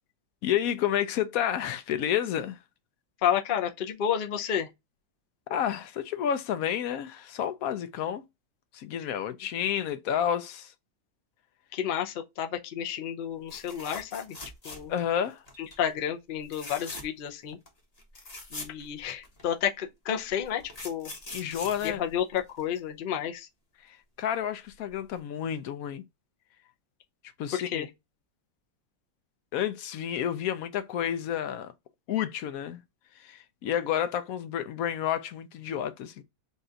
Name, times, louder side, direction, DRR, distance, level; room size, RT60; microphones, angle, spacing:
voice 1, 0.4-2.6 5.5-8.2 8.7-10.7 14.9-15.4 21.3-22.0 23.9-26.0 27.4-27.9 29.5-31.7 32.1-32.8 33.2-36.2, left 9 dB, 70° left, 0.9 m, -30 dB
voice 2, 3.2-4.7 9.0-9.1 11.7-14.4 14.6-14.9 15.6-17.6 18.5-21.1 21.8-23.5 27.5-27.9, left 9 dB, 90° left, 0.4 m, -31 dB
sound 1, 13.5-15.1 15.5-15.8 16.4-17.3 17.7-17.8 18.0-19.5 20.2-22.8 24.7-24.9 25.2-25.3, left 2 dB, 30° left, 0.8 m, -42 dB
4.1 x 2.4 x 3.8 m
omnidirectional pair, 1.8 m